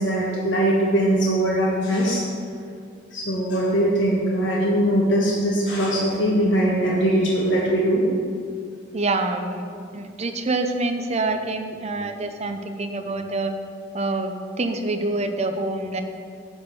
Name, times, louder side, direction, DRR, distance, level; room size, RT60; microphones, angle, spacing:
voice 1, 0.0-2.2 3.1-8.0, right 1 dB, 75° left, -5 dB, 1.4 m, -21 dB
voice 2, 8.9-9.6 9.9-13.5 13.9-16.0, right 2 dB, 35° right, 6 dB, 0.7 m, -26 dB
10.5 x 4.5 x 7.1 m, 2.3 s
head